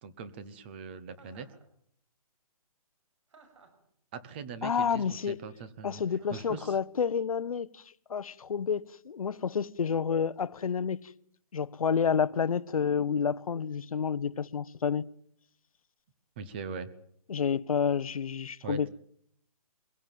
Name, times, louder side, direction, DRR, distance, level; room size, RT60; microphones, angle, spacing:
voice 1, 0.0-1.5 4.1-6.0 6.3-6.8 16.4-16.9 18.6-18.9, right 5 dB, 15° right, 1.0 m, -41 dB
Chuckle chortle, 1.1-1.6 3.3-3.9 6.2-6.6, right 4 dB, 50° right, 6.5 m, -58 dB
voice 2, 4.6-5.4 5.8-7.8 8.1-11.1 11.5-15.1 17.3-18.9, left 6 dB, 65° left, 0.9 m, -29 dB
23.5 x 17.0 x 9.2 m
hypercardioid pair, 175°, 19 cm